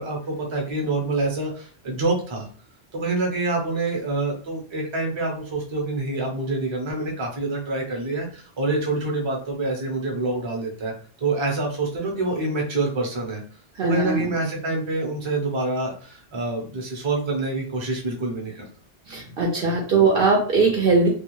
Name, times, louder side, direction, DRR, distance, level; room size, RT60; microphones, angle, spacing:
voice 1, 0.0-2.5 2.9-10.9 11.2-13.4 13.8-18.7, right 2 dB, 30° right, 0 dB, 0.7 m, -26 dB
voice 2, 13.8-14.2 19.1-21.1, right 4 dB, 65° right, -1 dB, 0.7 m, -20 dB
2.3 x 2.3 x 3.0 m, 0.43 s
omnidirectional pair, 1.1 m